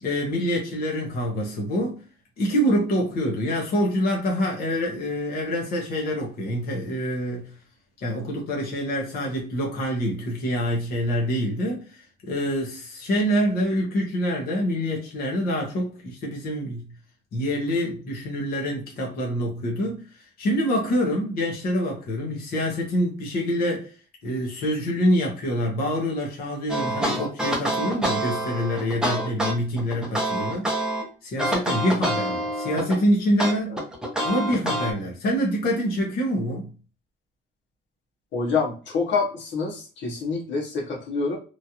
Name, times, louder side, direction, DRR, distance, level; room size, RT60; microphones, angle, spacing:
voice 1, 0.0-2.0 2.4-7.5 8.0-16.9 17.3-23.9 24.2-30.7 31.2-33.9 34.2-36.7, equal, 55° left, 0.9 m, -26 dB
sound 1, 26.7-31.0 31.4-33.0 33.4-34.9, right 1 dB, 5° right, 0.6 m, -26 dB
voice 2, 38.3-41.4, left 4 dB, 85° left, 1.0 m, -26 dB
3.0 x 2.4 x 2.7 m
cardioid pair, 180°, 18 cm